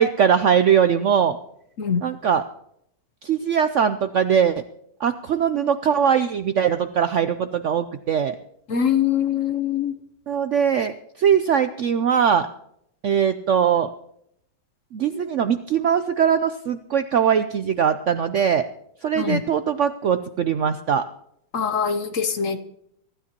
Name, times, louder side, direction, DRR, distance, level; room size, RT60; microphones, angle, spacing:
voice 1, 0.0-1.4 2.0-2.4 3.2-4.6 5.0-8.3 10.3-10.9 11.2-12.5 13.0-13.9 14.9-18.6 19.0-21.1, right 8 dB, 65° right, 10 dB, 0.7 m, -21 dB
voice 2, 8.7-9.9 19.2-19.4 21.5-22.6, left 7 dB, 55° left, 9 dB, 1.1 m, -23 dB
24.5 x 12.5 x 2.9 m, 0.73 s
omnidirectional pair, 1.9 m